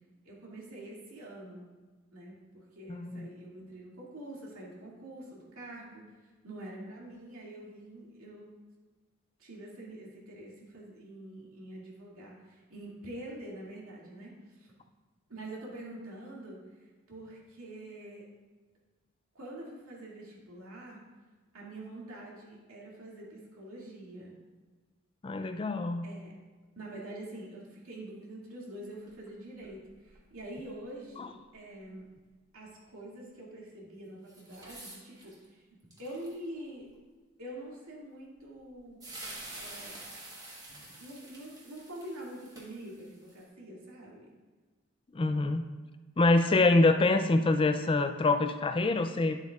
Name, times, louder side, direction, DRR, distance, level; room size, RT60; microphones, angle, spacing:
voice 1, 0.2-1.7 2.1-8.5 9.4-14.7 15.3-16.6 17.1-18.3 19.3-21.0 21.5-24.4 26.0-26.4 26.7-32.1 32.5-35.6 36.0-36.9 37.4-39.0 39.5-40.0 40.9-44.3, right 1 dB, 85° right, -4 dB, 2.3 m, -45 dB
voice 2, 2.9-3.3 25.2-26.0 31.2-31.3 45.1-45.6 46.2-49.4, left 2 dB, 25° left, 8 dB, 0.3 m, -25 dB
sound 1, 29.1-29.3 29.6-29.7 30.1-30.6 34.3-35.5 35.9-36.3 36.8-36.9 38.7-38.8 39.0-43.4, right 2 dB, 20° right, 1.3 m, -47 dB
10.5 x 7.7 x 2.4 m, 1.3 s
head